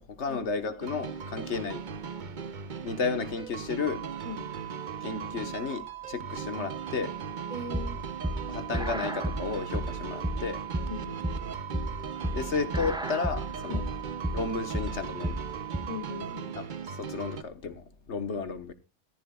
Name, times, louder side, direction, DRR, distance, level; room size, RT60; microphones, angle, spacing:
voice 1, 0.0-1.8 2.8-4.1 5.0-7.2 8.5-10.6 12.3-13.8 14.3-15.4 16.6-18.7, left 5 dB, 55° left, 1.5 m, -33 dB
sound 1, 0.8-17.4, right 6 dB, 45° right, 0.8 m, -39 dB
sound 2, 3.8-16.4, right 15 dB, 85° right, 1.6 m, -42 dB
voice 2, 7.5-8.0 10.9-11.2 13.7-13.9 15.9-16.6, left 3 dB, 30° left, 1.9 m, -39 dB
sound 3, 7.7-15.8, equal, 5° right, 0.4 m, -32 dB
14.5 x 14.0 x 2.3 m
omnidirectional pair, 1.5 m